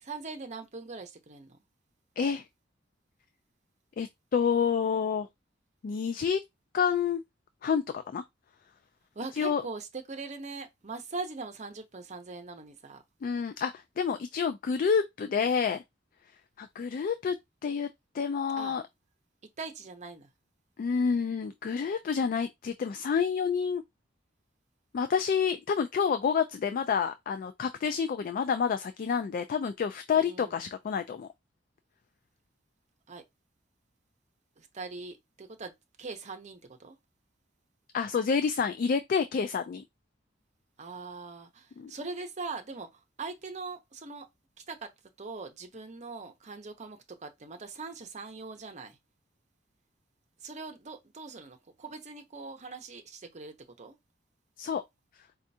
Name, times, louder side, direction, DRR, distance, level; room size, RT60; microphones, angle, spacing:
voice 1, 0.0-1.6 9.1-13.0 18.6-18.8 19.6-20.3 30.1-30.6 33.1-33.2 34.6-35.7 36.0-37.0 40.8-44.3 44.7-44.9 45.2-49.0 50.4-53.9, right 4 dB, 40° right, 0.8 m, -41 dB
voice 2, 4.0-5.3 5.8-6.4 6.7-7.2 7.6-8.2 9.3-9.6 13.2-15.8 16.6-17.4 17.6-17.9 18.1-18.8 20.8-23.8 24.9-31.3 37.9-39.8 41.8-41.9 54.6-54.8, left 6 dB, 50° left, 0.3 m, -28 dB
4.4 x 2.4 x 2.7 m
head